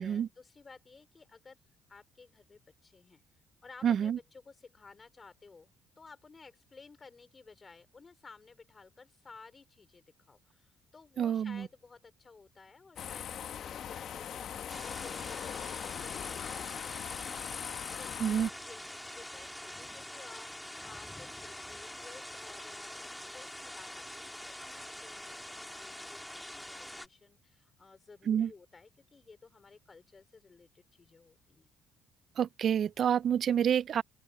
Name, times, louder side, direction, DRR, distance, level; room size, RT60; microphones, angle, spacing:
voice 1, 0.0-1.6 1.9-3.2 3.6-31.7, left 4 dB, 35° left, 5.1 m, -56 dB
voice 2, 3.8-4.2 11.2-11.7 18.2-18.5 28.3-28.5 32.4-34.0, right 9 dB, 55° right, 0.5 m, -28 dB
sound 1, 13.0-18.5, left 9 dB, 60° left, 1.4 m, -40 dB
sound 2, 14.7-27.1, left 1 dB, 5° left, 3.6 m, -45 dB
open air
supercardioid pair, 70°, 0 cm